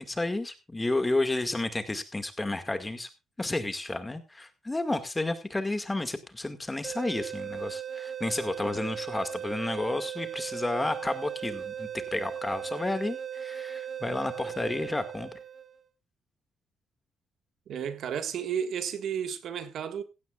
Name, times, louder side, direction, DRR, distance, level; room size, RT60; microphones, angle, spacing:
voice 1, 0.0-3.1 3.4-15.3, left 2 dB, 15° left, 2.0 m, -31 dB
sound 1, 6.8-15.8, right 8 dB, 45° right, 1.0 m, -37 dB
voice 2, 17.7-20.0, right 8 dB, 70° right, 1.7 m, -32 dB
16.0 x 15.5 x 2.5 m
cardioid pair, 90°, 0 cm